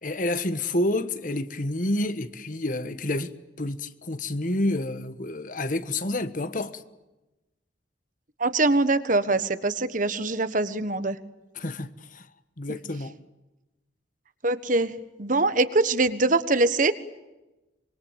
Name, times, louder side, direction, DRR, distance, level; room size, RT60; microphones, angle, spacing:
voice 1, 0.0-6.8 11.5-12.3 12.6-13.1, left 1 dB, 45° left, 1.4 m, -29 dB
voice 2, 8.4-11.2 14.4-16.9, right 2 dB, 45° right, 1.4 m, -23 dB
25.5 x 23.0 x 8.9 m
head